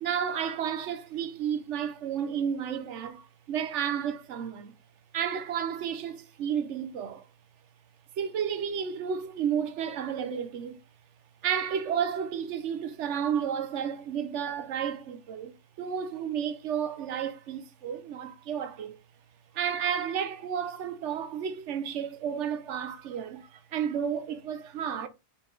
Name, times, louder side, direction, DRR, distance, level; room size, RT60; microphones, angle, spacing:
voice 1, 0.0-4.7 5.1-7.3 8.2-10.8 11.4-18.9 19.5-25.1, right 8 dB, 85° right, 1.1 m, -32 dB
5.5 x 4.8 x 3.8 m
omnidirectional pair, 1.2 m